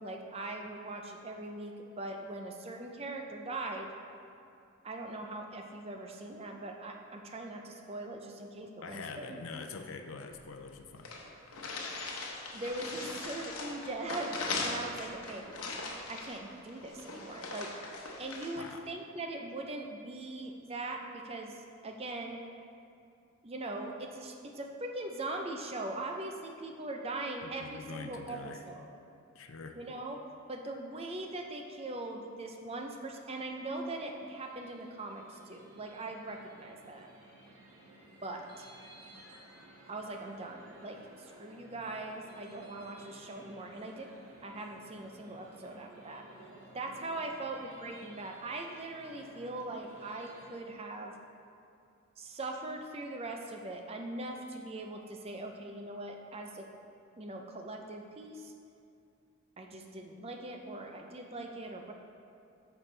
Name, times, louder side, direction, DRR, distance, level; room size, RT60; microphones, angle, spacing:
voice 1, 0.0-3.9 4.8-9.4 12.5-15.4 16.1-17.7 18.2-22.4 23.4-28.4 28.6-28.9 29.8-30.2 30.5-37.1 38.2-38.7 39.9-44.1 44.4-46.2 46.7-51.1 52.2-56.7 57.2-58.5 59.6-61.9, right 2 dB, 30° right, 3 dB, 0.5 m, -41 dB
voice 2, 8.8-11.1 18.6-18.9 27.4-28.6 29.3-29.8, left 4 dB, 70° left, 5 dB, 0.5 m, -44 dB
sound 1, 10.3-10.4 10.7-10.8 11.0-18.6, left 3 dB, 90° left, 1.0 m, -40 dB
sound 2, 33.4-50.6, right 1 dB, 85° right, 1.3 m, -56 dB
9.1 x 6.2 x 3.3 m, 2.5 s
head